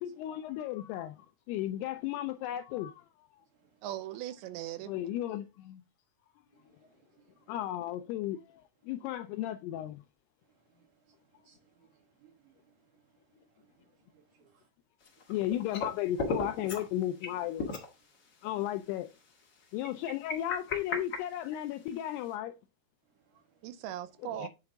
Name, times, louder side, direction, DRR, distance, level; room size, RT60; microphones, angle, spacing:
voice 1, 0.0-3.0 4.9-5.8 7.5-10.0 15.3-17.7 18.4-19.1 19.7-22.5 24.3-24.5, left 13 dB, 85° left, 2.3 m, -35 dB
voice 2, 3.8-4.9 23.6-24.5, right 12 dB, 90° right, 3.0 m, -39 dB
voice 3, 6.5-7.4 10.7-11.2 11.4-12.7 13.5-14.7 23.3-23.6, right 7 dB, 60° right, 2.3 m, -67 dB
sound 1, 15.0-15.9 16.2-16.9 17.2-17.3 17.6-17.9 18.4-18.5 19.8-21.9, left 3 dB, 65° left, 1.0 m, -35 dB
9.6 x 4.6 x 3.8 m
omnidirectional pair, 5.1 m